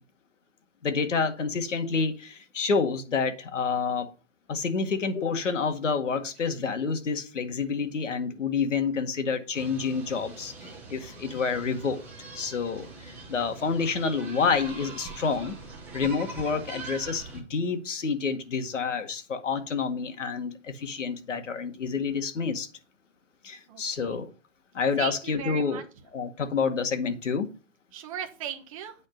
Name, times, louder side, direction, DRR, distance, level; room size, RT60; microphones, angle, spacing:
voice 1, 0.8-4.1 4.5-12.0 12.4-15.6 15.9-22.7 23.4-24.3 24.7-25.8 26.1-27.5, left 5 dB, 75° left, 2.0 m, -28 dB
sound 1, 9.5-17.4, right 3 dB, 5° right, 0.7 m, -43 dB
voice 2, 23.7-24.2 25.0-25.1 25.4-25.8 27.9-28.9, right 10 dB, 25° right, 1.1 m, -37 dB
9.7 x 4.3 x 6.6 m
hypercardioid pair, 160°, 37 cm